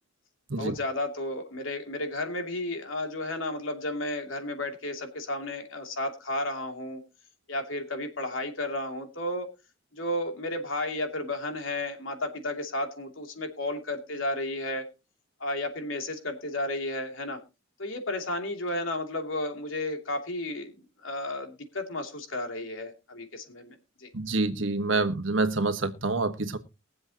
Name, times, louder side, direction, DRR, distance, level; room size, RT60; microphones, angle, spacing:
voice 1, 0.6-7.0 7.5-9.5 9.9-14.9 15.4-17.4 17.8-20.8 21.0-24.1, left 1 dB, 80° left, 4 dB, 2.7 m, -33 dB
voice 2, 24.1-26.6, right 3 dB, 70° right, 9 dB, 1.4 m, -27 dB
22.0 x 7.7 x 2.9 m, 0.28 s
head